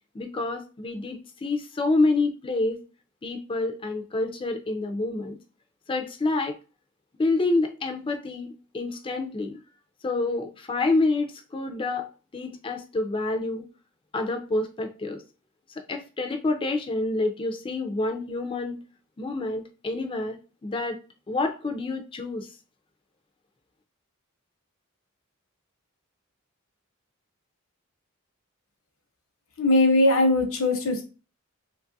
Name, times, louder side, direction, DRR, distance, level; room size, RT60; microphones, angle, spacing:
voice 1, 0.1-2.8 3.2-5.4 5.9-6.6 7.2-8.5 8.7-9.6 10.0-13.6 14.1-15.2 15.9-18.8 19.2-20.4 20.6-21.0 21.3-22.5, left 2 dB, 25° left, 5 dB, 0.4 m, -27 dB
voice 2, 29.6-31.0, left 2 dB, 70° left, 4 dB, 0.7 m, -20 dB
2.9 x 2.3 x 2.6 m, 0.34 s
head